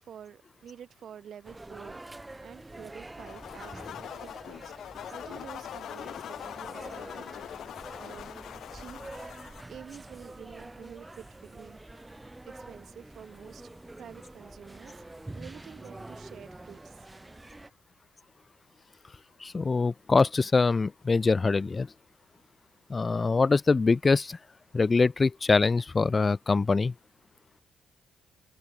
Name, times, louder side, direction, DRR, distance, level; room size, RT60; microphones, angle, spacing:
voice 1, 0.0-7.6 7.9-8.4 8.7-9.3 9.7-11.8 12.4-13.7 14.0-15.0 15.3-17.1, right 8 dB, 60° right, 3.3 m, -49 dB
sound 1, 1.4-17.7, right 2 dB, 15° right, 2.2 m, -46 dB
sound 2, 3.2-9.6, left 10 dB, 65° left, 4.5 m, -42 dB
voice 2, 19.4-21.9 22.9-24.4 24.7-26.9, left 4 dB, 30° left, 0.8 m, -24 dB
cardioid pair, 90°, 0 cm